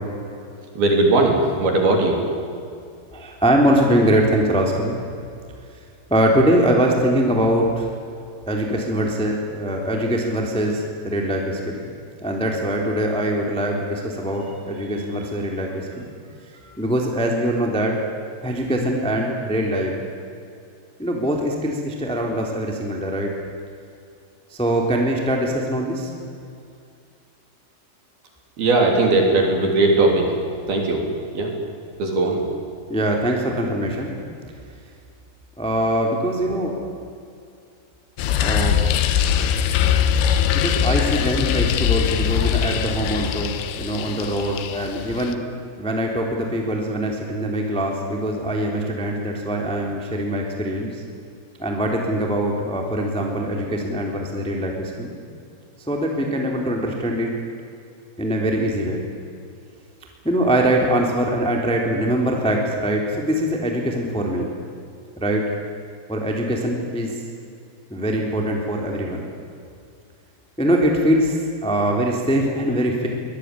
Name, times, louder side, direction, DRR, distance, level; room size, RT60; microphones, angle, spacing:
voice 1, 0.8-2.2 28.6-30.3 30.7-31.0 31.3-31.5 32.0-32.4, right 2 dB, 50° right, 1 dB, 4.9 m, -18 dB
voice 2, 3.1-5.0 6.1-7.9 8.5-11.9 12.2-16.1 16.8-18.0 18.4-19.9 21.0-23.3 24.5-26.1 32.9-34.1 35.6-36.7 38.4-38.9 40.5-45.5 45.8-51.0 51.6-55.2 55.9-57.3 58.2-59.0 60.2-64.5 65.2-65.5 66.1-67.1 67.9-69.2 70.6-73.1, right 1 dB, ahead, 0 dB, 2.3 m, -22 dB
sound 1, 38.2-45.3, left 9 dB, 75° left, 3.6 m, -21 dB
24.0 x 20.0 x 9.9 m, 2.4 s
omnidirectional pair, 5.9 m